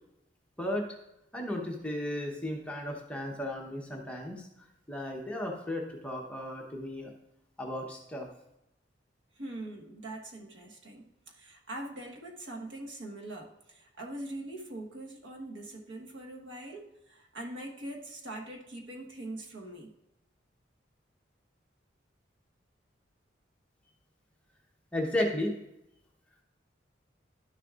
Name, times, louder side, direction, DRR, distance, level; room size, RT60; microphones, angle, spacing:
voice 1, 1.3-4.5 4.9-7.1 7.6-8.3 24.9-25.5, left 1 dB, 5° left, 0 dB, 0.9 m, -34 dB
voice 2, 9.4-19.9, right 1 dB, 75° right, 1 dB, 1.2 m, -42 dB
11.5 x 6.6 x 2.4 m, 0.86 s
head